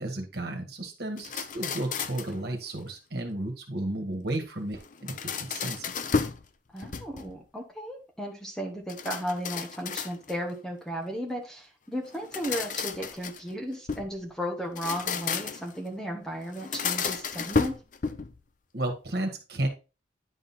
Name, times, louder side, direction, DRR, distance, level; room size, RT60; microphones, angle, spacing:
voice 1, 0.0-5.9 18.7-19.7, right 1 dB, 55° right, 3 dB, 1.8 m, -33 dB
sound 1, 1.2-2.4 4.8-6.5 6.8-7.4 8.9-10.5 12.1-14.1 14.7-15.8 16.5-18.4, left 5 dB, 45° left, 0.5 m, -32 dB
voice 2, 6.7-17.7, equal, 5° left, 1 dB, 1.2 m, -35 dB
10.5 x 3.9 x 4.2 m, 0.31 s
head